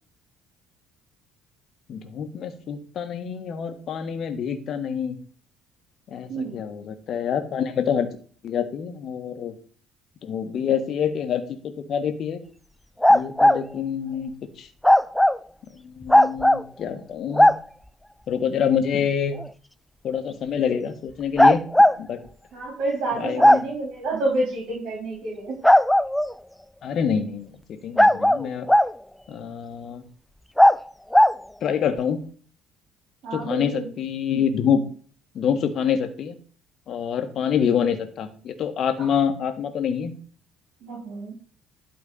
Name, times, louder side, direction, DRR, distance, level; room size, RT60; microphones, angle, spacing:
voice 1, 1.9-5.2 6.1-8.1 8.4-9.5 10.2-11.6 11.9-12.4 13.1-14.3 14.6-14.7 15.8-17.5 18.3-19.4 20.0-21.6 22.0-22.2 23.1-23.6 26.8-28.7 29.3-30.0 31.6-32.2 33.3-34.9 35.3-36.4 36.9-40.2, left 7 dB, 50° left, 8 dB, 1.6 m, -26 dB
sound 1, 13.0-13.6 14.8-15.4 16.1-16.6 17.3-17.6 19.3-19.4 21.4-21.9 23.4-23.6 25.6-26.3 28.0-28.9 30.6-30.8 31.1-31.4, left 1 dB, 5° left, 0.3 m, -15 dB
voice 2, 22.5-25.6 33.2-33.9 39.0-39.1 40.8-41.3, right 2 dB, 55° right, -1 dB, 3.8 m, -29 dB
12.0 x 4.3 x 5.5 m, 0.43 s
figure-of-eight pair, 55°, 0 cm